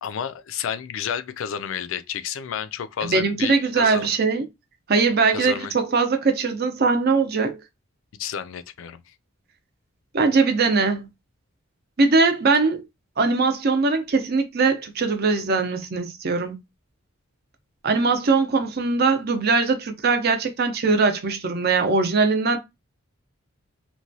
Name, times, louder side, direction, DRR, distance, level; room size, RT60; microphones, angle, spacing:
voice 1, 0.0-4.1 5.3-5.7 8.2-9.0, left 8 dB, 65° left, 0.3 m, -31 dB
voice 2, 3.0-4.5 4.9-7.6 10.1-11.1 12.0-12.8 13.2-16.6 17.8-22.6, right 4 dB, 45° right, 0.6 m, -21 dB
3.0 x 2.2 x 2.6 m
head